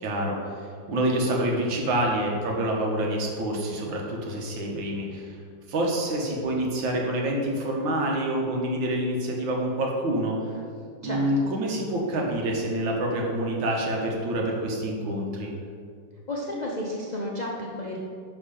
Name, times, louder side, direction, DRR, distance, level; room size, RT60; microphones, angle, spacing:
voice 1, 0.0-5.4 5.7-10.5 11.0-15.5, right 1 dB, 85° right, -1 dB, 1.9 m, -27 dB
voice 2, 11.0-11.5 16.3-18.0, left 1 dB, 50° left, -4 dB, 0.5 m, -32 dB
10.5 x 3.6 x 5.0 m, 2.2 s
omnidirectional pair, 2.1 m